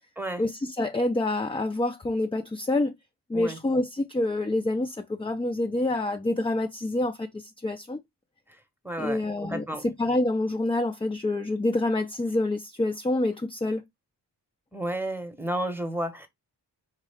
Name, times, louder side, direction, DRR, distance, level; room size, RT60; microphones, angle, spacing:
voice 1, 0.4-2.9 3.3-8.0 9.0-13.8, left 2 dB, 15° left, 0.4 m, -27 dB
voice 2, 8.8-9.8 14.7-16.3, right 1 dB, 5° right, 0.9 m, -32 dB
4.4 x 2.4 x 3.3 m
cardioid pair, 90°, 43 cm